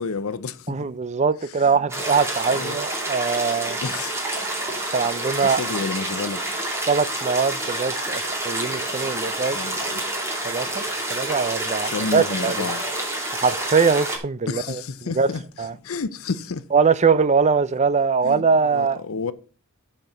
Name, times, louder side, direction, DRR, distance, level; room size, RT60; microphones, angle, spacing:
voice 1, 0.0-0.9 1.6-1.7 2.5-2.8 3.8-4.2 5.4-6.4 9.5-10.0 11.8-12.8 14.5-16.6 18.2-19.3, left 4 dB, 75° left, 0.6 m, -30 dB
voice 2, 0.7-3.8 4.9-5.6 6.9-9.6 10.4-12.7 13.3-15.3 15.6-15.8 16.7-19.0, right 5 dB, 35° right, 0.5 m, -22 dB
sound 1, 1.9-14.2, right 1 dB, 15° right, 2.5 m, -28 dB
10.5 x 4.4 x 6.6 m
head